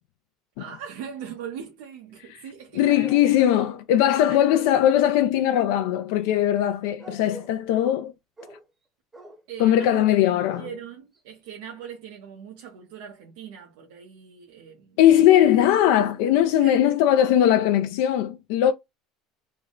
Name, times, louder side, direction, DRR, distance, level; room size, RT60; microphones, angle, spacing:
voice 1, 0.6-3.4 4.3-4.6 7.2-7.3 9.5-15.0 16.6-16.8, right 8 dB, 85° right, 0.8 m, -40 dB
voice 2, 2.8-8.1 9.6-10.6 15.0-18.7, left 11 dB, 75° left, 0.4 m, -20 dB
sound 1, 3.0-3.7 4.0-4.7 7.0-8.0 8.4-8.6 9.1-9.4 9.8-10.1 10.5-10.8 11.2-11.3 11.5-11.6, right 1 dB, 15° right, 0.9 m, -44 dB
3.4 x 2.1 x 3.6 m
cardioid pair, 140°, 0 cm